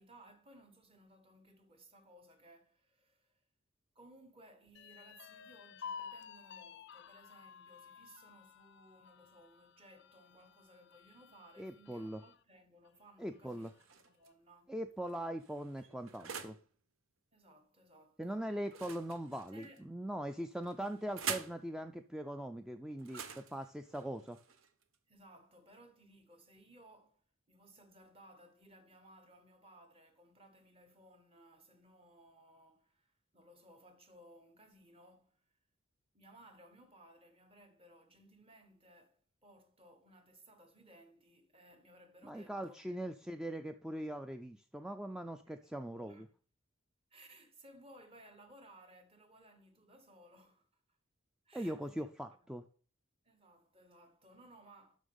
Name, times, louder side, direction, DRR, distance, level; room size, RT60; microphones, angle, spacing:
voice 1, 0.0-3.4 3.9-14.7 17.3-18.5 19.5-19.8 25.1-27.2 27.5-35.4 36.1-43.4 46.0-46.3 47.1-50.7 51.4-52.1 53.2-55.0, right 1 dB, 30° right, 1.2 m, -61 dB
sound 1, 4.7-12.4 12.8-12.9 13.3-14.0, left 7 dB, 55° left, 0.5 m, -52 dB
voice 2, 11.6-12.2 13.2-13.7 14.7-16.6 18.2-24.4 42.2-46.3 51.5-52.6, right 1 dB, 5° right, 0.3 m, -41 dB
sound 2, 13.5-14.3 15.0-16.7 18.7-19.8 20.6-21.6 23.0-25.0, right 6 dB, 80° right, 0.9 m, -46 dB
7.4 x 6.2 x 5.2 m
head